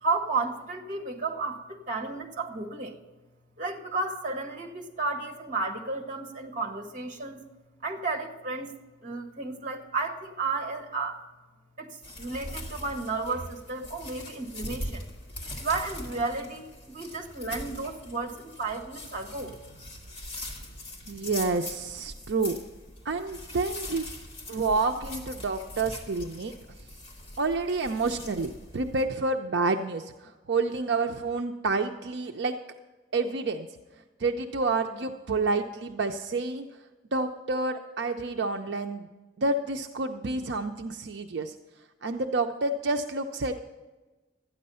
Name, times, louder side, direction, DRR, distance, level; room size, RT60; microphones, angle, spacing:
voice 1, 0.0-3.0 3.6-7.4 7.8-8.7 9.0-11.2 11.8-15.0 15.6-19.5, right 3 dB, 45° right, 1 dB, 1.6 m, -32 dB
sound 1, 12.0-29.0, left 1 dB, 30° left, 1.7 m, -42 dB
voice 2, 21.1-22.6 23.1-24.0 24.5-26.5 27.4-32.5 33.1-33.7 34.2-36.7 37.1-39.1 39.4-41.6 42.0-43.6, right 3 dB, 75° right, 5 dB, 0.5 m, -29 dB
13.0 x 9.3 x 5.5 m, 1.2 s
head